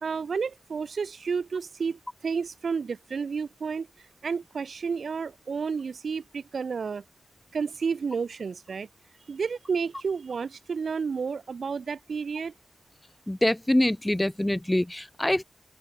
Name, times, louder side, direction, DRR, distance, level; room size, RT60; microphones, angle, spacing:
voice 1, 0.0-3.9 4.2-7.0 7.5-8.9 9.3-12.5, right 5 dB, 65° right, 2.3 m, -31 dB
voice 2, 13.3-15.4, left 1 dB, 10° left, 0.8 m, -24 dB
open air
wide cardioid pair, 155°, 0 cm